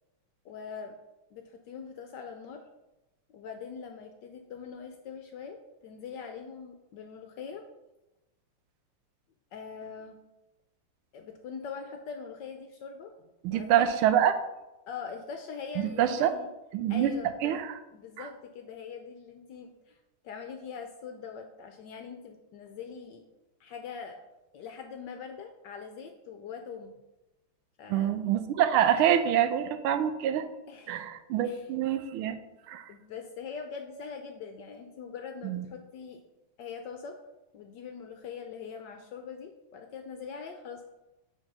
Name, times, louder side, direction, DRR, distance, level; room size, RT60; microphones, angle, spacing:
voice 1, 0.4-0.9 1.3-2.6 3.3-5.6 5.8-7.6 9.5-10.2 11.1-13.1 13.5-13.9 14.9-16.5 16.9-17.3 17.9-20.0 20.2-23.2 23.6-24.2 24.5-26.9 27.8-28.1 30.7-31.0 31.4-31.7 32.9-36.2 36.6-37.2 37.5-40.9, left 6 dB, 75° left, 5 dB, 1.0 m, -42 dB
voice 2, 13.4-14.3 15.8-16.3 16.7-17.1 17.4-17.8 18.2-18.3 27.9-30.4 30.9-32.4 32.7-32.9 35.4-35.6, right 10 dB, 85° right, 10 dB, 1.5 m, -26 dB
6.4 x 3.9 x 5.3 m, 0.99 s
omnidirectional pair, 2.3 m